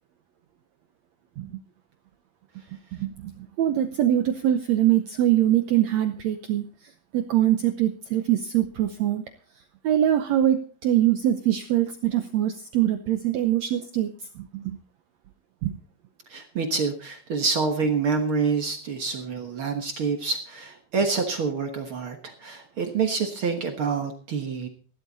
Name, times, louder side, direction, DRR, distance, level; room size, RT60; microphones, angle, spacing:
voice 1, 2.9-9.2 9.8-14.1 14.3-14.8 15.6-15.8, right 12 dB, 90° right, 8 dB, 1.5 m, -23 dB
voice 2, 16.3-24.7, right 5 dB, 60° right, 5 dB, 1.4 m, -27 dB
16.0 x 12.0 x 4.1 m, 0.40 s
omnidirectional pair, 4.3 m